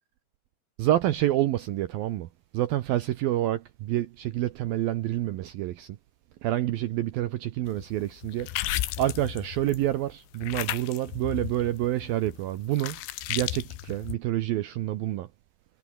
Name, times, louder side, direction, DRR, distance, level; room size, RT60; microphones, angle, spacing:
voice 1, 0.8-2.3 2.5-6.0 6.4-8.5 9.0-13.0 13.3-15.3, right 14 dB, 75° right, 2.3 m, -28 dB
sound 1, 7.8-10.0 10.4-14.2, left 16 dB, 85° left, 3.5 m, -34 dB
omnidirectional pair, 5.2 m